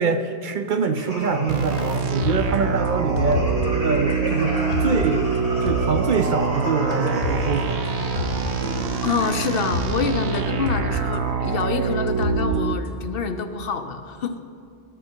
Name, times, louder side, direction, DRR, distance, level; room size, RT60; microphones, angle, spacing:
voice 1, 0.0-3.5 3.8-5.3 5.6-7.8, right 5 dB, 55° right, 7 dB, 0.6 m, -24 dB
sound 1, 1.0-9.6, equal, 35° right, 3.4 m, -32 dB
sound 2, 1.5-12.8, right 6 dB, 85° right, 0.9 m, -25 dB
sound 3, 1.8-3.7 4.1-4.2 4.6-5.1 5.4-5.5 5.7-6.1 6.9-8.8 9.2-9.3 9.6-10.1 10.3-12.9, left 4 dB, 90° left, 1.4 m, -30 dB
voice 2, 9.0-14.4, left 5 dB, 65° left, 8 dB, 0.8 m, -26 dB
18.5 x 6.5 x 4.4 m, 2.4 s
omnidirectional pair, 1.1 m